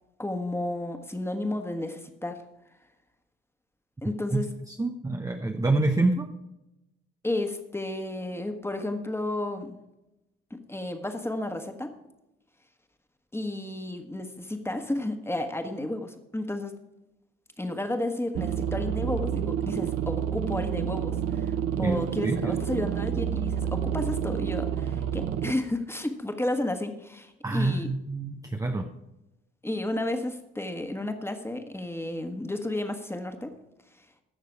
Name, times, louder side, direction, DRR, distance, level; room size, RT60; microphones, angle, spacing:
voice 1, 0.2-2.4 4.0-4.5 7.2-9.8 10.5-11.9 13.3-16.7 17.6-21.5 21.8-27.9 29.6-33.6, left 1 dB, 10° left, 6 dB, 1.6 m, -32 dB
voice 2, 4.7-6.3 21.8-22.6 27.4-28.9, right 2 dB, 10° right, 4 dB, 0.8 m, -27 dB
sound 1, 18.4-25.5, right 9 dB, 50° right, 0.8 m, -29 dB
15.5 x 6.6 x 4.7 m, 0.92 s
figure-of-eight pair, 50°, 29 cm